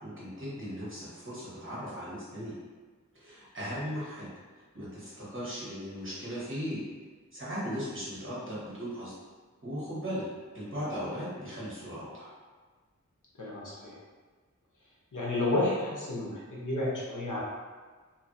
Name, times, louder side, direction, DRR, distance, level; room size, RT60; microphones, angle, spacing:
voice 1, 0.0-2.5 3.1-4.3 4.5-6.8 7.3-9.1 9.6-10.2 10.5-12.3, equal, 40° right, -9 dB, 1.2 m, -37 dB
voice 2, 13.4-14.0 15.1-17.4, left 2 dB, 75° left, -6 dB, 0.8 m, -31 dB
2.7 x 2.5 x 2.6 m, 1.4 s
wide cardioid pair, 60°, 31 cm